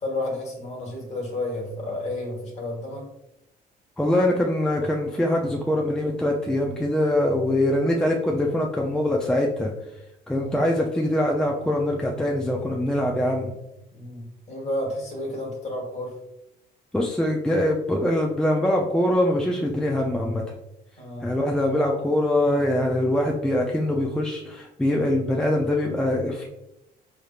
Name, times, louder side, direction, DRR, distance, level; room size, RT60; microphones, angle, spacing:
voice 1, 0.0-3.0 10.3-10.6 13.9-16.2 21.0-21.3, left 1 dB, 40° left, 0 dB, 1.4 m, -31 dB
voice 2, 4.0-9.7 10.3-13.5 16.9-20.4 21.2-26.5, left 1 dB, 5° left, 0 dB, 0.4 m, -23 dB
4.2 x 3.3 x 2.4 m, 0.86 s
cardioid pair, 110°, 17 cm